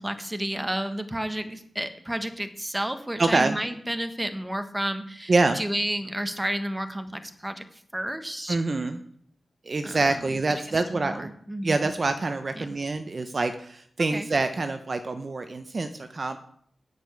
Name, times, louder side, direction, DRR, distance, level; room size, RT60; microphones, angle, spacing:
voice 1, 0.0-7.6 7.9-8.6 9.8-10.2 10.7-11.9 12.6-12.8 14.1-14.3, right 1 dB, 5° right, 8 dB, 1.1 m, -31 dB
voice 2, 3.2-3.6 5.3-5.6 8.5-9.0 9.7-11.3 11.6-16.4, right 3 dB, 35° right, 8 dB, 0.7 m, -26 dB
9.7 x 6.8 x 8.3 m, 0.63 s
wide cardioid pair, 165°, 0 cm